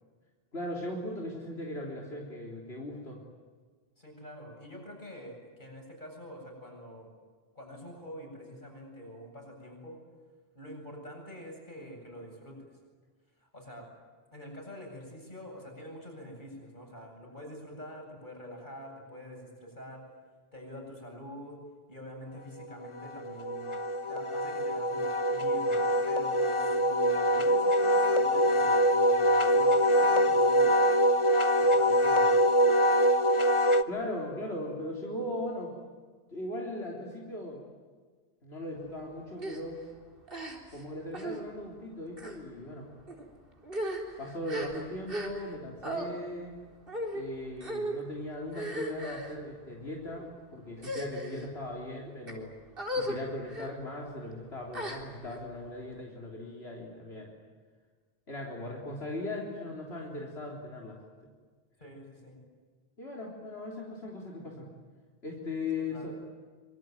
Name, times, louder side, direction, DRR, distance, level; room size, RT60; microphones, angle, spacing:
voice 1, 0.5-3.2 33.9-35.7 36.3-37.6 38.4-39.8 40.7-42.9 44.2-46.5 47.1-52.5 53.0-57.3 58.3-61.0 63.0-64.7 65.2-66.1, left 1 dB, 85° left, -2 dB, 4.2 m, -38 dB
voice 2, 4.0-7.1 7.5-10.0 10.5-12.7 13.4-13.9 14.3-20.1 20.5-21.6 21.9-23.7 24.1-30.8 31.6-32.4 51.0-51.2 61.8-62.4 65.9-66.1, equal, 50° left, 1 dB, 8.3 m, -46 dB
Wind instrument woodwind instrument, 22.8-33.8, equal, 30° left, 1.0 m, -24 dB
sound 1, 39.4-39.6 40.3-40.8 41.1-41.4 42.1-42.4 43.1-43.2 43.6-45.6 45.8-46.1 46.9-47.2 47.6-48.0 48.5-49.3 50.0-50.3 50.8-51.5 52.1-52.3 52.8-53.2 53.5-53.7 54.7-55.4, equal, 60° right, 4.2 m, -36 dB
26.5 x 24.0 x 9.3 m, 1.5 s
omnidirectional pair, 1.0 m